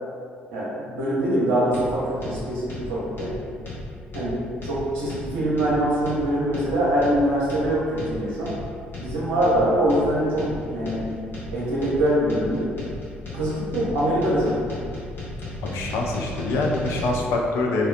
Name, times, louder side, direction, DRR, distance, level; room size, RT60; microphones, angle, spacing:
voice 1, 0.5-3.3 4.1-8.5 9.0-11.1 11.5-12.7 13.3-14.6, right 1 dB, 70° right, -8 dB, 0.7 m, -23 dB
sound 1, 1.7-17.1, left 2 dB, 40° left, 1.1 m, -35 dB
voice 2, 15.6-17.9, left 2 dB, 60° left, 0 dB, 0.4 m, -25 dB
3.3 x 2.2 x 2.3 m, 2.2 s
figure-of-eight pair, 45°, 5 cm